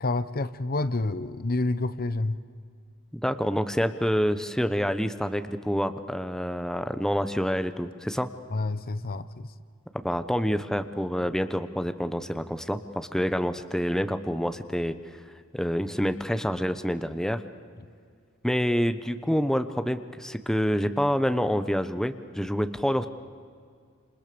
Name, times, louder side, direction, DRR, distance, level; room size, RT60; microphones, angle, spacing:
voice 1, 0.0-2.4 8.5-9.5, left 2 dB, 45° left, 14 dB, 0.9 m, -28 dB
voice 2, 3.1-8.3 10.0-14.9 15.5-17.4 18.4-23.1, equal, ahead, 10 dB, 1.0 m, -27 dB
29.5 x 27.5 x 6.9 m, 2.1 s
head